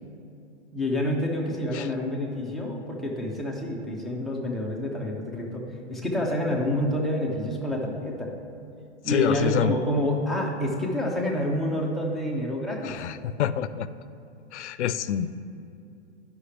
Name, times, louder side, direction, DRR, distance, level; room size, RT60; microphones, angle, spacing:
voice 1, 0.7-8.3 9.0-13.0, left 1 dB, ahead, -1 dB, 0.5 m, -28 dB
voice 2, 9.1-9.7 12.8-13.9 14.5-15.4, left 9 dB, 85° left, 14 dB, 0.5 m, -27 dB
11.0 x 5.6 x 3.3 m, 2.5 s
hypercardioid pair, 140°, 34 cm